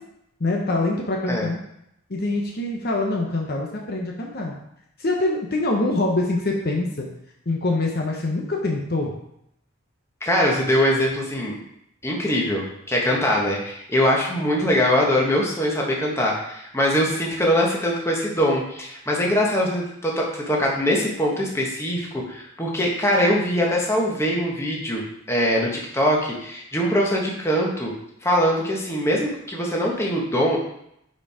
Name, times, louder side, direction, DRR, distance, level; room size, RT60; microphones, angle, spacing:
voice 1, 0.4-1.6 2.1-4.6 5.0-7.1 7.5-9.1, left 2 dB, 50° left, 0 dB, 0.9 m, -24 dB
voice 2, 10.2-11.6 12.0-27.9 28.2-30.6, equal, 15° left, -2 dB, 1.3 m, -22 dB
6.3 x 4.5 x 4.9 m, 0.77 s
head